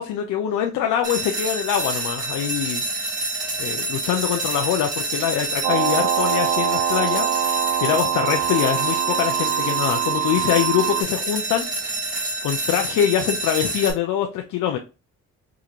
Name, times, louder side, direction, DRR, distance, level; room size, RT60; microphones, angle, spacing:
voice 1, 0.0-2.8 3.6-7.3 7.8-11.7 12.4-14.8, left 10 dB, 85° left, 3 dB, 0.6 m, -23 dB
sound 1, 1.0-13.9, right 2 dB, 25° right, 1.4 m, -28 dB
sound 2, 5.6-11.0, right 11 dB, 70° right, 0.6 m, -24 dB
4.9 x 2.4 x 2.8 m, 0.30 s
cardioid pair, 90°, 30 cm